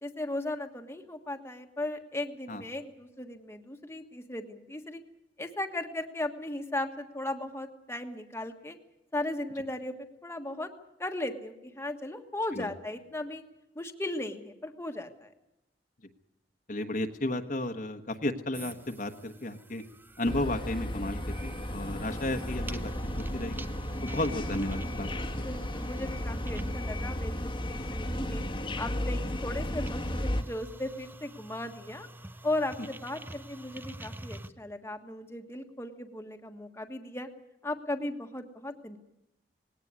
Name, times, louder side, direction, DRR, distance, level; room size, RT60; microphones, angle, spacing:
voice 1, 0.0-5.0 5.4-8.8 9.1-9.9 10.2-10.7 11.0-13.4 13.7-15.3 25.4-28.4 28.8-32.1 32.4-37.3 37.6-39.0, left 1 dB, 15° left, 4 dB, 1.5 m, -36 dB
voice 2, 16.7-19.8 20.2-22.9 23.2-23.6 24.0-25.1 25.4-25.5, left 1 dB, 45° left, 6 dB, 1.3 m, -33 dB
sound 1, 18.5-34.5, right 1 dB, 10° right, 0.7 m, -47 dB
sound 2, 20.2-30.4, left 1 dB, 30° left, 1.3 m, -34 dB
19.5 x 17.5 x 9.6 m, 0.88 s
head